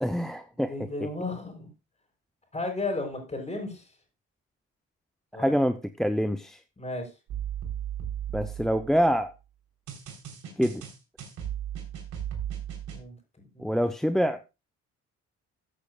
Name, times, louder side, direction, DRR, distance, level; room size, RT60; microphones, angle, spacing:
voice 1, 0.0-0.9 5.3-6.6 8.3-9.3 10.6-10.8 13.6-14.4, equal, ahead, 10 dB, 0.6 m, -26 dB
voice 2, 0.7-1.7 2.5-3.9 5.3-5.5 6.8-7.1 12.9-13.2 13.5-13.7, left 2 dB, 20° left, 3 dB, 5.3 m, -34 dB
sound 1, 7.3-9.1 9.9-13.0, right 10 dB, 75° right, 3.5 m, -36 dB
15.0 x 8.4 x 2.3 m, 0.27 s
cardioid pair, 90°, 30 cm